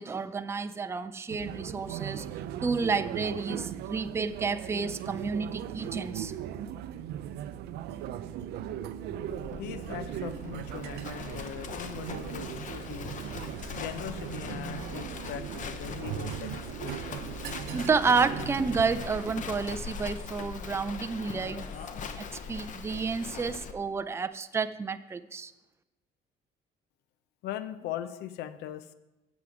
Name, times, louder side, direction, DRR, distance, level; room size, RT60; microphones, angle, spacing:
voice 1, 0.0-2.3 2.6-6.3 17.7-21.7 22.2-25.5, right 4 dB, 15° right, 11 dB, 0.4 m, -30 dB
sound 1, 1.3-19.4, right 10 dB, 75° right, 0.5 m, -38 dB
Livestock farm animals working animals, 9.3-23.7, left 6 dB, 50° left, 0.9 m, -41 dB
voice 2, 9.5-17.0 27.4-28.9, left 11 dB, 85° left, 13 dB, 0.6 m, -40 dB
9.6 x 7.1 x 4.9 m, 1.0 s
cardioid pair, 110°, 17 cm